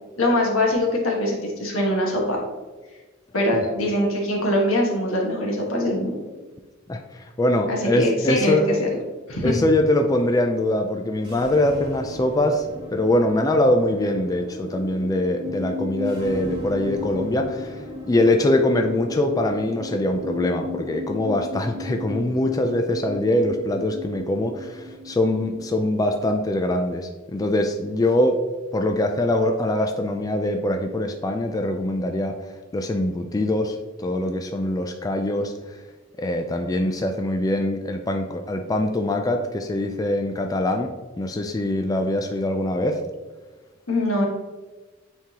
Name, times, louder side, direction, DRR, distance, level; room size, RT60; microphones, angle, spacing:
voice 1, 0.2-2.4 3.3-6.1 7.7-8.9 9.3-9.5 43.9-44.3, left 1 dB, 80° left, -1 dB, 1.4 m, -22 dB
voice 2, 6.9-8.7 9.4-28.4 28.7-32.4 32.7-35.8 36.2-43.0, left 1 dB, 20° left, 4 dB, 0.3 m, -23 dB
sound 1, 11.2-26.6, left 1 dB, 20° right, 1.5 m, -35 dB
8.8 x 3.7 x 2.8 m, 1.3 s
head